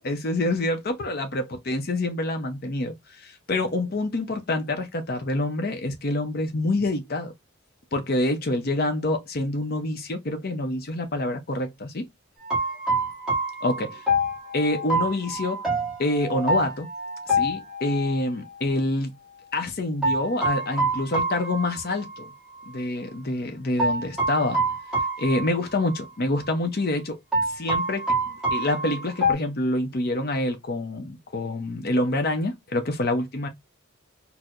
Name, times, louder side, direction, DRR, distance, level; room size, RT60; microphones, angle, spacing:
voice 1, 0.0-7.3 7.9-12.1 13.6-13.9 14.5-15.6 16.0-16.9 17.3-19.1 19.5-22.3 22.7-24.6 25.2-27.2 27.5-28.1 28.5-33.5, left 2 dB, 45° left, 0.6 m, -26 dB
sound 1, 12.4-18.2 20.0-22.3 22.6-22.7 23.8-26.1 26.3-26.5 27.3-29.3, right 1 dB, 5° right, 1.2 m, -26 dB
4.3 x 2.1 x 2.4 m
head